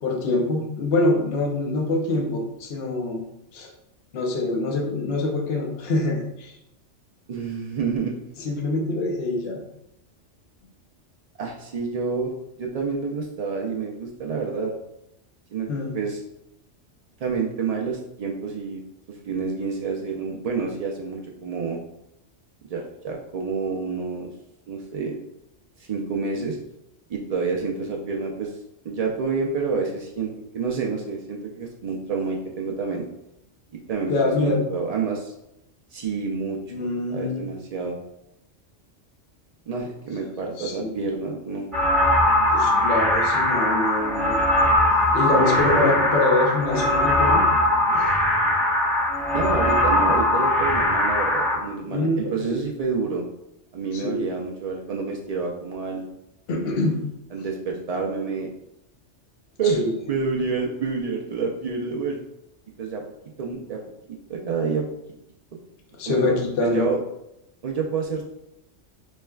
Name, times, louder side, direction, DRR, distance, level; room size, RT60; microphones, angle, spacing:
voice 1, 0.0-3.2 3.5-3.7 4.1-6.6 8.4-9.6 15.7-16.0 34.1-34.6 36.7-37.4 40.6-41.1 42.5-44.4 44.9-47.4 47.9-48.1 51.9-52.6 53.9-54.2 56.5-57.0 59.6-59.9 65.9-66.9, left 2 dB, 60° left, 0 dB, 1.0 m, -25 dB
voice 2, 7.3-8.2 11.4-12.3 12.6-14.7 15.5-15.7 15.9-16.2 17.2-18.8 19.1-21.8 22.7-24.3 24.7-25.2 25.8-26.6 27.1-28.6 28.8-33.1 33.7-35.3 35.9-36.8 37.1-38.0 39.7-41.7 45.3-46.1 49.3-53.2 53.7-56.1 56.7-58.5 59.6-59.8 60.1-62.2 62.8-63.0 63.4-63.8 64.3-64.8 66.1-67.0 67.6-68.3, right 4 dB, 75° right, 0 dB, 0.3 m, -28 dB
sound 1, 41.7-51.6, left 1 dB, ahead, 0.7 m, -20 dB
5.2 x 3.2 x 2.3 m, 0.83 s
omnidirectional pair, 1.2 m